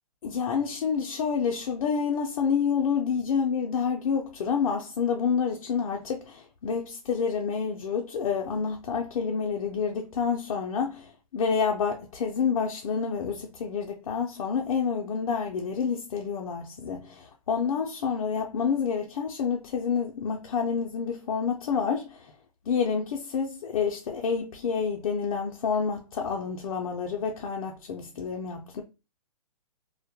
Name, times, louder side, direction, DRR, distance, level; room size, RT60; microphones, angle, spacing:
voice 1, 0.2-22.3 22.6-28.8, left 6 dB, 65° left, 0.5 m, -28 dB
2.1 x 2.1 x 2.8 m
hypercardioid pair, 140°, 19 cm